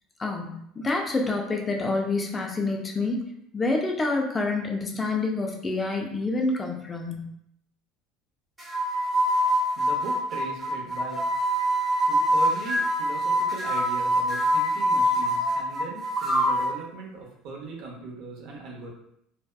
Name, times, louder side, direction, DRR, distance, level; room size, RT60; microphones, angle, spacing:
voice 1, 0.2-3.2 3.5-7.3, left 3 dB, 20° left, 1 dB, 0.3 m, -27 dB
sound 1, 8.6-16.8, equal, 10° right, 0.7 m, -24 dB
voice 2, 9.8-11.2 12.1-18.9, right 4 dB, 60° right, -1 dB, 0.6 m, -39 dB
2.6 x 2.2 x 2.2 m, 0.73 s
cardioid pair, 140°, 0 cm